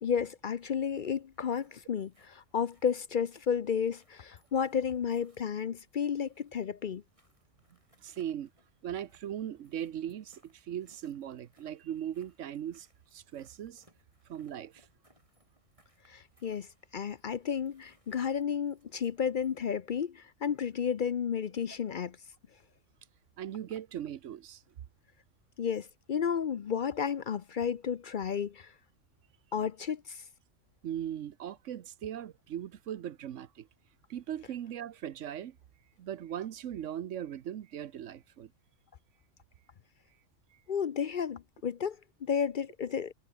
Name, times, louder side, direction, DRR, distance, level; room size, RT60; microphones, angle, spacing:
voice 1, 0.0-7.0 16.1-16.7 16.9-22.2 25.6-28.7 29.5-30.2 40.7-43.1, left 7 dB, 50° left, 0.7 m, -32 dB
sound 1, 0.6-19.8, right 1 dB, 25° right, 8.2 m, -70 dB
voice 2, 8.0-8.5 8.8-13.8 14.3-14.9 23.4-24.6 30.8-33.7 34.1-35.6 36.0-38.5, right 10 dB, 85° right, 1.2 m, -39 dB
omnidirectional pair, 1.3 m